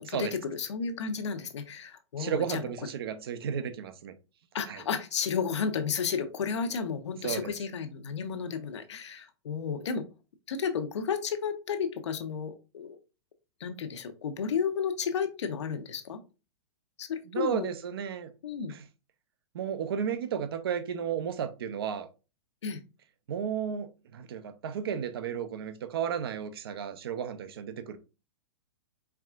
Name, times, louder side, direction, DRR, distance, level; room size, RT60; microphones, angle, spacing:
voice 1, 0.0-2.6 4.5-10.0 10.5-13.0 13.6-16.2 17.0-17.7 18.4-18.7 22.6-22.8, left 6 dB, 70° left, 0.9 m, -32 dB
voice 2, 2.2-4.1 4.7-4.8 7.2-7.5 17.3-18.3 18.7-18.8 19.5-22.1 23.3-28.0, right 8 dB, 55° right, 0.6 m, -33 dB
4.7 x 3.6 x 2.4 m
hypercardioid pair, 180°, 15 cm